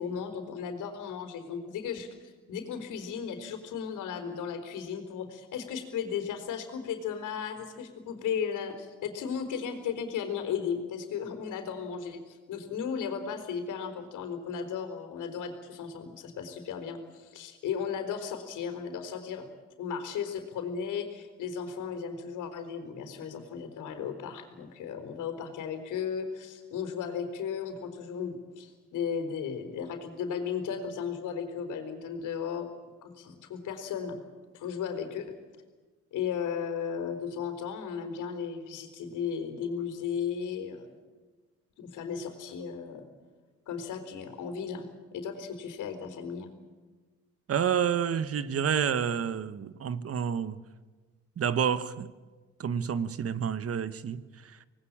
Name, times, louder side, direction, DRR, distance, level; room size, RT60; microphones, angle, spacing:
voice 1, 0.0-19.5 19.8-32.7 33.0-34.2 34.5-35.4 36.1-40.9 41.8-43.1 43.7-46.5, left 7 dB, 85° left, 5 dB, 4.1 m, -35 dB
voice 2, 47.5-50.6 51.4-52.1 52.6-54.2, right 8 dB, 50° right, 14 dB, 1.3 m, -29 dB
26.0 x 19.5 x 8.8 m, 1.3 s
cardioid pair, 90°, 30 cm